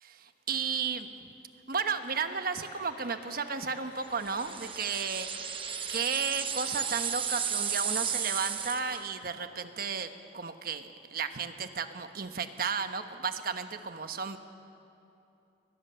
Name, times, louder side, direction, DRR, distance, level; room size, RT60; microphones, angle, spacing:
voice 1, 0.2-1.3 1.7-14.4, right 5 dB, 55° right, 8 dB, 1.2 m, -34 dB
sound 1, 1.7-9.0, left 3 dB, 55° left, 2.1 m, -51 dB
sound 2, 4.2-9.1, right 7 dB, 30° right, 1.0 m, -34 dB
23.0 x 20.0 x 6.9 m, 2.8 s
head